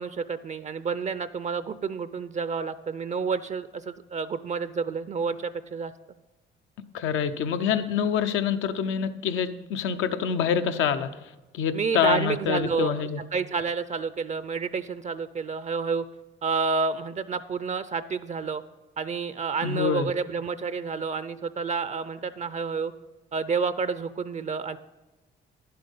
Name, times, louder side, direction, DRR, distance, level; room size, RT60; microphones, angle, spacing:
voice 1, 0.0-5.9 11.7-16.0 16.4-18.6 19.0-22.9 23.3-24.8, right 5 dB, 35° right, 14 dB, 0.4 m, -29 dB
voice 2, 6.9-11.1 11.5-13.2 19.6-20.1, left 7 dB, 85° left, 9 dB, 0.7 m, -26 dB
10.5 x 7.7 x 5.3 m, 1.1 s
cardioid pair, 90°, 20 cm